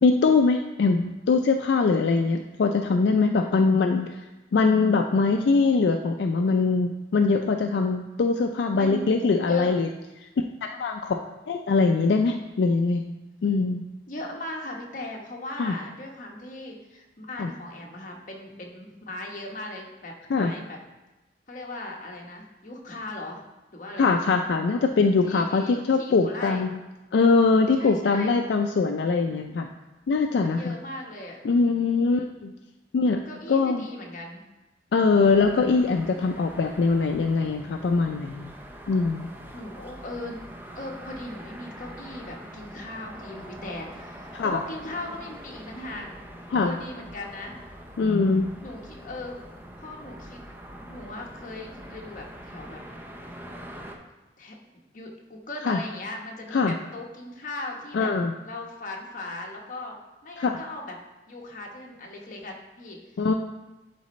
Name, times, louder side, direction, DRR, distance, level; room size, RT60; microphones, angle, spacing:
voice 1, 0.0-4.2 4.5-9.9 10.6-13.0 13.4-13.8 15.6-15.7 17.4-17.5 20.3-20.5 24.0-26.8 27.1-29.7 30.1-30.7 31.4-32.5 32.9-33.2 33.5-33.9 34.9-38.5 38.9-39.3 44.3-44.6 46.5-46.7 48.0-48.5 55.6-55.8 56.5-56.8 57.9-58.3 60.4-60.6 63.2-63.3, left 4 dB, 75° left, 5 dB, 0.3 m, -22 dB
voice 2, 8.7-9.1 9.5-9.7 14.1-20.8 21.5-23.4 23.7-24.2 25.2-26.6 27.7-28.4 30.4-31.4 31.7-32.3 33.2-34.4 39.5-40.4 40.7-46.1 46.5-47.5 48.6-49.4 49.8-50.4 50.9-52.8 54.4-54.6 54.9-58.1 58.4-60.0 60.2-61.0 61.3-63.2, left 1 dB, 45° left, 0 dB, 1.0 m, -38 dB
sound 1, 35.2-54.0, equal, 10° right, 0.6 m, -44 dB
11.0 x 4.1 x 3.1 m, 1.1 s
head